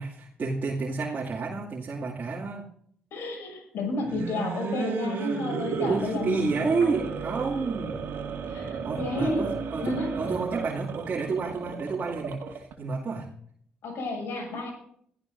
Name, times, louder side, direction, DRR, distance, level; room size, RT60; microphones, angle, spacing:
voice 1, 0.0-2.7 5.8-8.0 8.8-13.3, right 4 dB, 45° right, -5 dB, 2.4 m, -30 dB
voice 2, 3.1-6.5 6.8-7.0 8.5-9.5 9.8-10.1 13.8-14.7, left 2 dB, 70° left, 1 dB, 6.6 m, -31 dB
sound 1, 4.0-12.7, right 5 dB, 70° right, 2.3 m, -34 dB
22.5 x 14.0 x 2.7 m, 0.65 s
hypercardioid pair, 45°, 4 cm